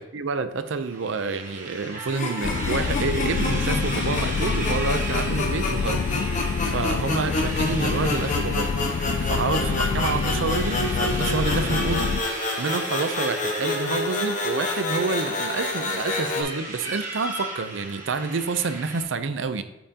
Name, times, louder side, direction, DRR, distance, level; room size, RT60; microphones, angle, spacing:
voice 1, 0.0-8.7 9.2-12.1 12.6-19.6, right 4 dB, 80° right, 11 dB, 0.5 m, -28 dB
sound 1, 0.8-19.0, right 2 dB, 40° right, 1.7 m, -36 dB
sound 2, 2.1-16.4, left 2 dB, 40° left, 1.2 m, -29 dB
sound 3, 2.4-12.2, left 5 dB, 70° left, 0.3 m, -27 dB
8.6 x 5.6 x 2.8 m, 1.0 s
head